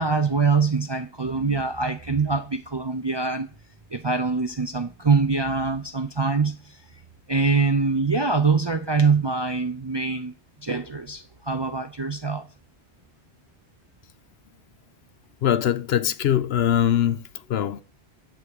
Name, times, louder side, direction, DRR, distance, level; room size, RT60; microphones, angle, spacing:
voice 1, 0.0-3.5 3.9-6.6 7.3-10.3 10.6-12.5, right 4 dB, 35° right, 0.4 m, -24 dB
voice 2, 15.4-17.2 17.5-17.8, left 10 dB, 70° left, 0.8 m, -22 dB
9.7 x 8.2 x 3.6 m
omnidirectional pair, 1.1 m